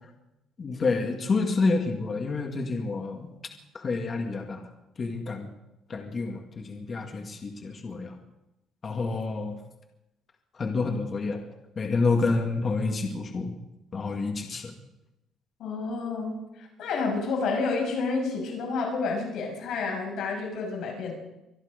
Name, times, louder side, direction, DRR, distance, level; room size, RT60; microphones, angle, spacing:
voice 1, 0.6-3.3 3.7-4.6 5.0-5.5 5.9-8.1 8.8-9.6 10.6-11.4 11.8-13.5 13.9-14.7, left 3 dB, 35° left, 3 dB, 2.2 m, -28 dB
voice 2, 15.6-21.1, left 4 dB, 65° left, 0 dB, 6.4 m, -30 dB
25.0 x 11.0 x 5.2 m, 0.91 s
cardioid pair, 135°, 0 cm